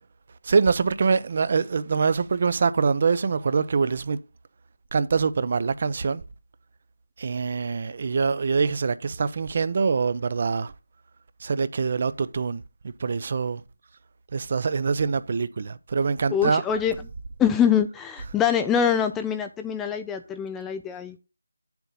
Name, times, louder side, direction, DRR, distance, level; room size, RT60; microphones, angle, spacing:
voice 1, 0.5-4.2 4.9-6.2 7.2-10.7 11.4-12.6 13.0-13.6 14.3-16.6, right 5 dB, 40° right, 0.6 m, -24 dB
voice 2, 16.3-17.1 17.4-21.2, left 8 dB, 5° left, 0.4 m, -24 dB
9.1 x 7.0 x 3.9 m
figure-of-eight pair, 165°, 0 cm